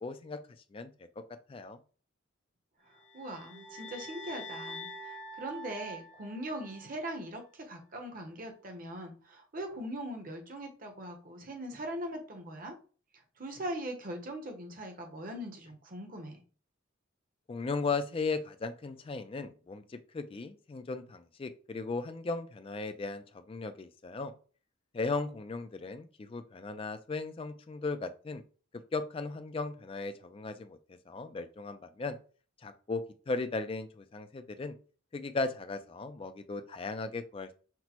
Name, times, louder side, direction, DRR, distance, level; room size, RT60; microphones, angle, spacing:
voice 1, 0.0-0.4 0.7-0.9 1.5-1.8 17.5-24.3 24.9-28.4 28.9-32.2 32.6-34.7 35.1-37.5, left 3 dB, 25° left, 9 dB, 0.3 m, -37 dB
voice 2, 2.9-12.7 13.4-16.4, right 1 dB, 40° right, 4 dB, 0.8 m, -41 dB
sound 1, 3.0-7.3, equal, 65° left, 0.8 m, -46 dB
5.9 x 2.1 x 2.9 m, 0.39 s
head